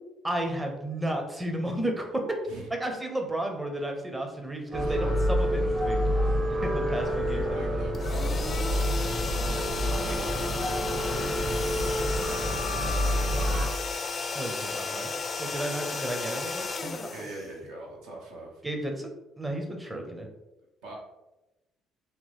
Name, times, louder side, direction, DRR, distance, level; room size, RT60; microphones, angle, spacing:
voice 1, 0.2-2.2 2.7-6.0 6.6-7.4 7.7-7.9 10.0-10.1 14.4-15.1 15.4-17.1 18.6-19.1 19.4-20.3, right 1 dB, 15° right, 3 dB, 0.5 m, -33 dB
sound 1, 4.7-13.7, equal, 45° right, 0.9 m, -28 dB
voice 2, 4.7-5.1 6.9-9.6 10.0-10.5 10.9-13.6 17.1-18.6 20.8-21.0, right 1 dB, 85° right, -2 dB, 0.7 m, -43 dB
sound 2, 7.9-17.9, left 4 dB, 40° left, 0.3 m, -34 dB
2.9 x 2.0 x 3.1 m, 0.99 s
supercardioid pair, 65°, 0 cm